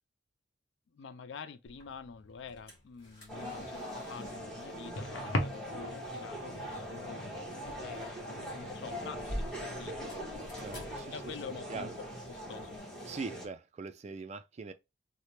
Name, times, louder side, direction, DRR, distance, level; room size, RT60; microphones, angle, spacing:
voice 1, 0.9-10.1 11.1-12.8, left 5 dB, 70° left, 0.3 m, -47 dB
sound 1, 1.6-12.8, equal, 30° left, 1.7 m, -49 dB
sound 2, 3.3-13.5, equal, 5° left, 1.0 m, -42 dB
sound 3, 3.4-11.6, left 1 dB, 85° left, 0.8 m, -43 dB
voice 2, 10.5-11.2 11.7-12.0 13.1-14.7, right 4 dB, 35° right, 0.3 m, -42 dB
3.2 x 2.0 x 4.2 m
head